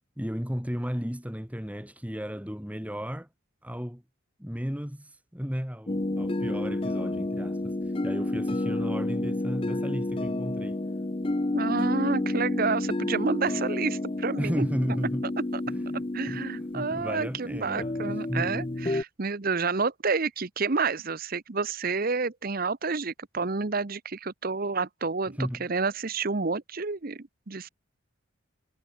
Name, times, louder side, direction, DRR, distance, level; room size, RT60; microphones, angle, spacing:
voice 1, 0.2-3.3 3.6-4.0 4.4-7.8 8.0-10.8 14.4-15.3 15.7-16.4 16.7-18.7 25.3-25.7, equal, 5° right, 2.6 m, -34 dB
sound 1, 5.9-19.0, left 2 dB, 25° left, 0.6 m, -30 dB
voice 2, 11.5-14.7 15.5-15.6 16.1-27.7, right 4 dB, 45° right, 0.9 m, -29 dB
head